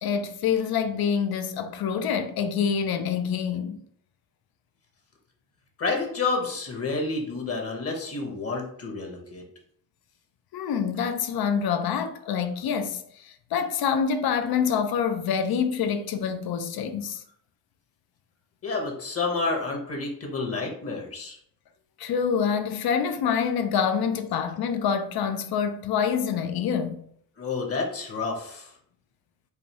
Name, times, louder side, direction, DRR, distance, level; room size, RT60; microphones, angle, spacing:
voice 1, 0.0-3.8 10.5-17.2 22.0-27.0, left 7 dB, 85° left, 0.5 m, -26 dB
voice 2, 5.8-9.4 18.6-21.4 27.4-28.7, left 3 dB, 40° left, 0.9 m, -29 dB
4.9 x 2.6 x 2.9 m
wide cardioid pair, 140°, 36 cm